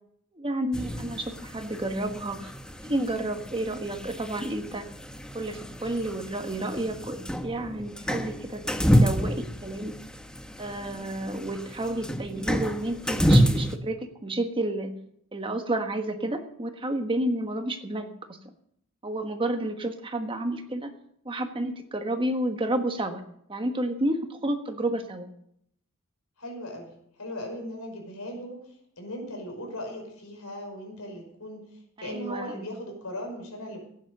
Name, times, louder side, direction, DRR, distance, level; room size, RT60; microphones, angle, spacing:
voice 1, 0.3-2.5 2.8-4.9 5.3-9.9 10.6-15.0 15.3-18.4 19.0-20.9 21.2-23.2 23.5-25.3 32.0-32.7, right 1 dB, 25° right, 6 dB, 1.4 m, -31 dB
sound 1, 0.7-13.8, equal, 5° left, 0.9 m, -28 dB
voice 2, 26.4-26.9 27.2-31.6 32.0-33.8, equal, 90° left, 2 dB, 5.5 m, -38 dB
17.0 x 9.4 x 6.8 m, 0.71 s
head